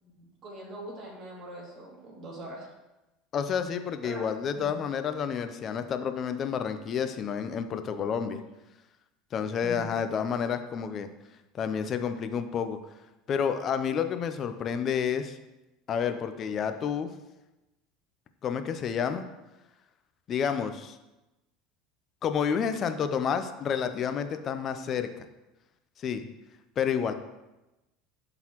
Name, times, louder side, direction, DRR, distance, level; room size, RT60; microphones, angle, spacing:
voice 1, 0.0-2.7 4.0-4.3 4.5-4.8 9.6-9.9, right 1 dB, 40° right, -3 dB, 2.5 m, -42 dB
voice 2, 3.3-8.4 9.3-11.1 11.5-12.8 13.3-15.4 15.9-17.1 18.4-19.2 20.3-21.0 22.2-25.3 26.0-26.3 26.8-27.1, left 7 dB, 40° left, 9 dB, 0.6 m, -30 dB
11.0 x 3.9 x 3.0 m, 1.0 s
supercardioid pair, 110°, 0 cm